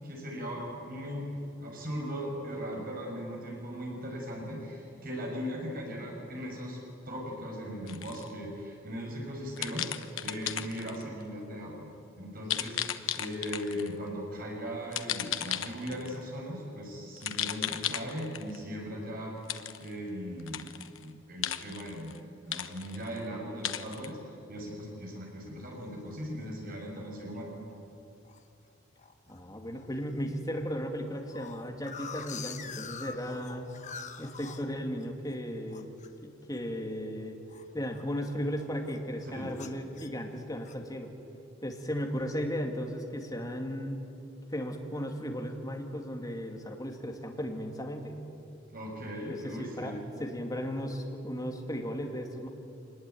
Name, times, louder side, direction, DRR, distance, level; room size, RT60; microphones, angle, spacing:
voice 1, 0.0-6.8 7.0-11.9 12.2-19.4 19.8-20.7 21.0-22.2 22.5-24.2 24.5-27.5 39.2-39.5 48.7-50.0, equal, 45° right, 0 dB, 6.3 m, -38 dB
sound 1, 7.9-8.3 9.6-11.0 12.5-13.9 14.9-16.2 17.2-18.6 19.5-19.9 20.4-21.0 21.4-22.2 22.5-23.2 23.6-24.1, left 11 dB, 85° left, 1.1 m, -35 dB
sound 2, 25.8-26.2 26.7-26.8 27.0-27.4 27.7-28.4 29.0-29.4 29.7-29.9 30.1-30.2 30.5-35.4 35.7-38.2 38.5-39.1 39.5-40.9, left 6 dB, 40° left, 1.2 m, -45 dB
voice 2, 29.3-33.7 34.2-35.9 36.2-37.4 37.7-41.1 41.6-44.0 44.5-48.2 49.3-52.5, equal, 20° left, 2 dB, 2.5 m, -36 dB
25.0 x 20.5 x 9.4 m, 2.6 s
head